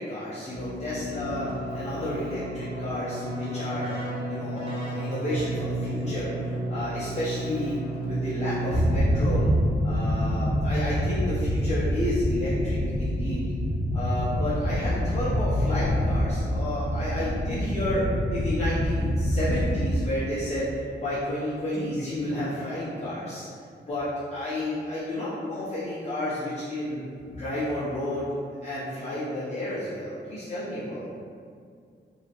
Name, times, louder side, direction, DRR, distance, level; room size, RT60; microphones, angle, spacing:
voice 1, 0.0-7.7 8.0-9.5 9.8-13.5 13.9-20.7 21.0-23.5 23.9-27.0 27.3-28.3 28.6-31.1, left 1 dB, 35° left, -11 dB, 0.7 m, -31 dB
Keyboard (musical), 0.5-9.2, right 1 dB, 30° right, 1.0 m, -33 dB
sound 1, 1.2-18.9, equal, 70° right, 0.5 m, -43 dB
sound 2, 8.7-20.0, equal, 90° left, 0.6 m, -26 dB
voice 2, 21.7-22.2 22.5-22.8 27.3-27.4, right 1 dB, 60° left, -6 dB, 1.0 m, -42 dB
3.0 x 2.8 x 2.9 m, 2.2 s
wide cardioid pair, 100°, 19 cm